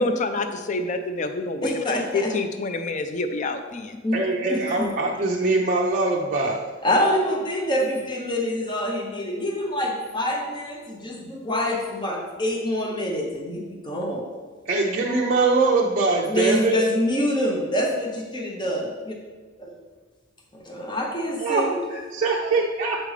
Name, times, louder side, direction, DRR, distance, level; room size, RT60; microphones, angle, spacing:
voice 1, 0.0-4.0, left 3 dB, 40° left, 8 dB, 0.4 m, -27 dB
voice 2, 1.6-2.3 4.0-4.2 4.5-4.9 6.8-14.2 16.2-19.1 19.6-19.7 20.5-21.8, equal, 25° left, 0 dB, 0.8 m, -26 dB
voice 3, 4.1-6.6 14.7-16.8 21.4-23.0, right 3 dB, 40° right, -3 dB, 0.5 m, -23 dB
7.4 x 5.0 x 3.2 m, 1.4 s
head